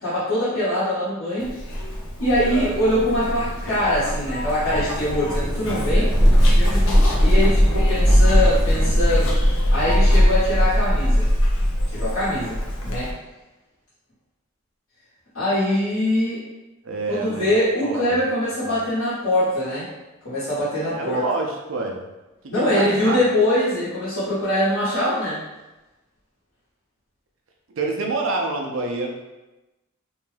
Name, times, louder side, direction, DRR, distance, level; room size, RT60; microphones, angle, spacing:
voice 1, 0.0-1.5 2.2-6.1 6.6-11.3 11.9-12.6 12.8-13.1 15.3-16.4 17.1-19.9 20.2-21.2 22.5-25.4, left 1 dB, 85° left, -12 dB, 1.1 m, -23 dB
Zipper (clothing), 1.4-13.1, equal, 70° left, 0.6 m, -20 dB
sound 1, 2.2-10.6, equal, 10° right, 0.4 m, -33 dB
voice 2, 2.4-2.7 7.5-8.3 16.8-17.5 17.8-18.2 18.6-18.8 20.9-22.1 22.6-23.2 27.7-29.2, right 3 dB, 65° right, 1 dB, 0.5 m, -28 dB
2.6 x 2.2 x 3.2 m, 1.0 s
head